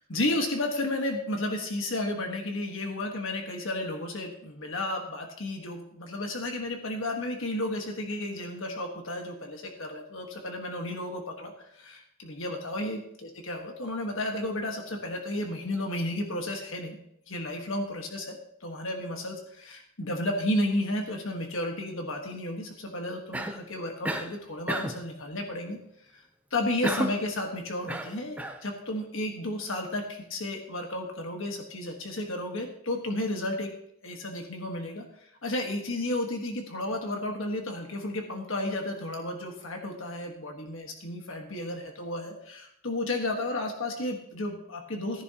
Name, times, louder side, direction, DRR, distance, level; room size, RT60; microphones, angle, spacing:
voice 1, 0.1-17.0 17.3-25.8 26.1-26.2 26.5-33.7 34.0-35.0 35.4-45.2, left 1 dB, 65° left, 3 dB, 1.4 m, -32 dB
Cough, 23.3-23.7 24.0-24.3 24.7-25.1 26.8-27.3 27.9-28.6, right 1 dB, 5° right, 0.6 m, -31 dB
15.0 x 10.5 x 2.9 m, 0.75 s
head